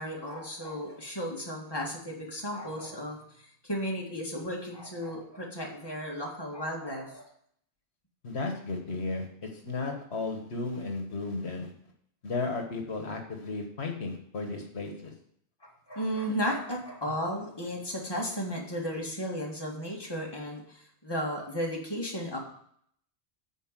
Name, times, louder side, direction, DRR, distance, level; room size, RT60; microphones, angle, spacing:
voice 1, 0.0-7.3 9.8-9.9 15.6-22.4, equal, 20° left, -2 dB, 2.2 m, -34 dB
voice 2, 8.2-11.7 12.2-15.1 16.2-16.4, left 3 dB, 80° left, 3 dB, 1.6 m, -34 dB
10.0 x 4.6 x 7.6 m, 0.66 s
omnidirectional pair, 1.1 m